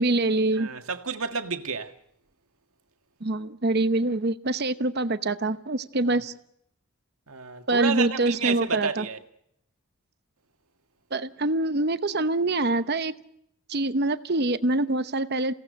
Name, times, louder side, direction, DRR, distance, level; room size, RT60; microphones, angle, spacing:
voice 1, 0.0-0.7 3.2-6.3 7.7-9.1 11.1-13.1 13.7-15.5, right 2 dB, 45° right, 0.9 m, -25 dB
voice 2, 0.6-1.9 7.3-9.2, right 5 dB, 75° right, 1.8 m, -30 dB
29.0 x 17.5 x 6.5 m
head